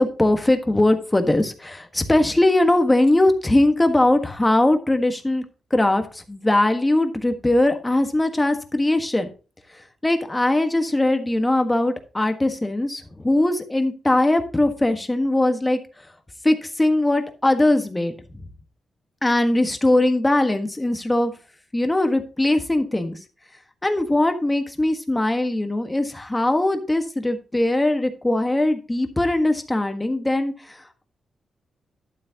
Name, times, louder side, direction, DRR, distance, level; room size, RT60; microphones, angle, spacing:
voice 1, 0.0-5.4 5.7-9.3 10.0-15.8 16.4-18.1 19.2-21.3 21.7-23.2 23.8-30.8, left 1 dB, 15° left, 7 dB, 1.4 m, -20 dB
12.0 x 7.5 x 2.9 m, 0.34 s
cardioid pair, 95°, 0 cm